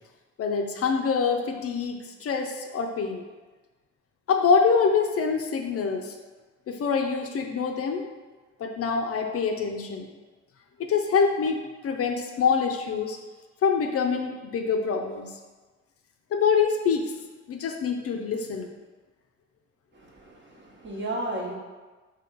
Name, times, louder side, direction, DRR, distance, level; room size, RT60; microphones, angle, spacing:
voice 1, 0.4-3.2 4.3-6.1 6.7-8.1 8.6-10.1 10.8-13.2 13.6-15.3 16.3-17.1 17.5-18.7, left 5 dB, 50° left, 4 dB, 0.5 m, -25 dB
voice 2, 19.9-21.5, right 1 dB, 40° right, -2 dB, 1.1 m, -34 dB
3.9 x 2.9 x 4.5 m, 1.3 s
cardioid pair, 90°, 30 cm